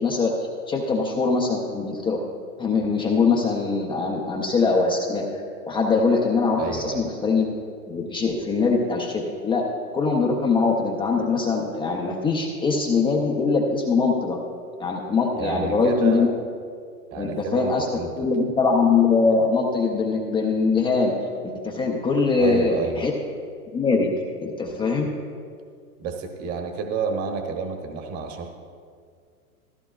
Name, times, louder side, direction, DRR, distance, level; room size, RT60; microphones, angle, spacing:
voice 1, 0.0-2.2 2.6-7.5 7.9-9.6 9.9-14.4 14.8-16.3 17.2-17.9 18.2-21.2 21.4-23.1 23.7-24.1 24.4-25.1, left 4 dB, 10° left, -1 dB, 0.5 m, -22 dB
voice 2, 6.6-7.1 15.4-16.3 17.1-18.3 22.4-23.1 26.0-28.5, right 4 dB, 35° right, 4 dB, 1.2 m, -30 dB
14.0 x 12.0 x 2.4 m, 2.1 s
hypercardioid pair, 120°, 45 cm